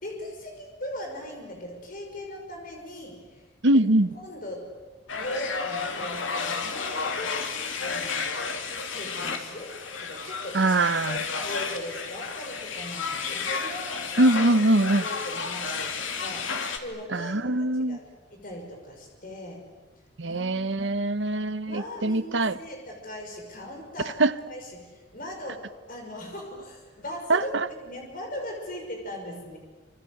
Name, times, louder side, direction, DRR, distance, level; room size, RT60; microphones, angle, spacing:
voice 1, 0.0-3.4 4.1-4.7 5.1-8.3 8.9-10.8 11.3-14.1 14.8-16.5 16.8-18.0 18.3-19.6 20.2-20.9 21.7-24.2 24.5-29.6, left 1 dB, 45° left, 2 dB, 5.9 m, -39 dB
voice 2, 3.6-4.1 10.5-11.3 14.2-15.0 17.1-18.0 20.2-22.6 24.2-24.3 27.3-27.7, right 2 dB, 70° right, 13 dB, 1.0 m, -23 dB
sound 1, 5.1-16.8, left 5 dB, 90° left, 2.6 m, -32 dB
27.5 x 26.5 x 8.0 m, 1.2 s
head